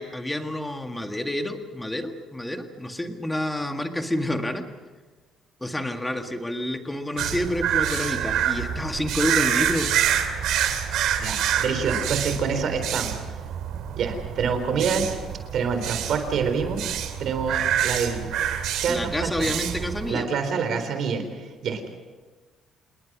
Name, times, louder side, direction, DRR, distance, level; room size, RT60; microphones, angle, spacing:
voice 1, 0.0-4.6 5.6-9.9 18.9-20.3, left 1 dB, 5° left, 5 dB, 1.9 m, -29 dB
sound 1, 7.2-20.1, right 9 dB, 75° right, 2.7 m, -27 dB
voice 2, 11.2-13.2 14.0-15.1 15.5-16.8 17.2-18.3 18.8-19.5 20.0-21.9, right 6 dB, 55° right, 8 dB, 4.0 m, -27 dB
28.0 x 20.5 x 6.2 m, 1.4 s
cardioid pair, 145°, 0 cm